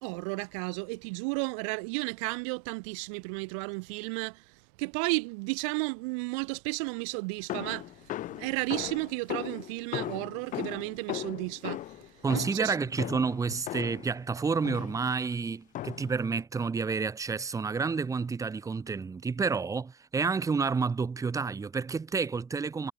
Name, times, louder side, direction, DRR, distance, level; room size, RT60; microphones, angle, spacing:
voice 1, 0.0-4.4 4.8-7.8 8.3-11.8 12.3-12.7, right 33 dB, 90° right, 3.4 m, -33 dB
sound 1, 7.5-14.1 14.6-15.1 15.7-16.2, left 14 dB, 55° left, 6.2 m, -38 dB
voice 2, 12.2-22.9, right 5 dB, 20° right, 2.8 m, -30 dB
cardioid pair, 120°, 16 cm